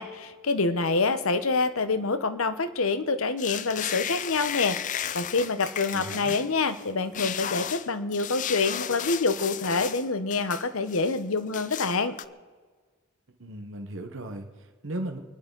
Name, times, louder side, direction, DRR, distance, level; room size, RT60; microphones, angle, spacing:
voice 1, 0.0-4.8 5.1-12.2, left 3 dB, 80° left, 11 dB, 1.0 m, -26 dB
sound 1, 3.4-6.9 7.1-10.1 10.3-11.2 11.5-12.3, left 10 dB, 35° left, 0.4 m, -34 dB
voice 2, 5.9-6.4 13.4-15.2, right 1 dB, 65° right, 4 dB, 1.2 m, -36 dB
27.5 x 10.5 x 3.9 m, 1.4 s
head